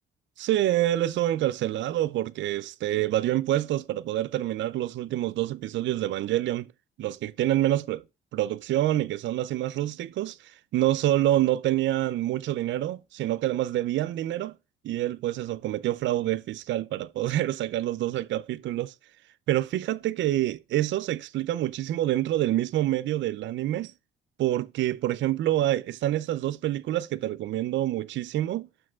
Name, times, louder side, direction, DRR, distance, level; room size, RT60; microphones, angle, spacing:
voice 1, 0.4-6.7 7.0-8.0 8.3-14.5 14.8-18.9 19.5-23.9 24.4-28.7, right 14 dB, 70° right, 0.4 m, -27 dB
6.1 x 4.6 x 6.0 m
cardioid pair, 90°, 20 cm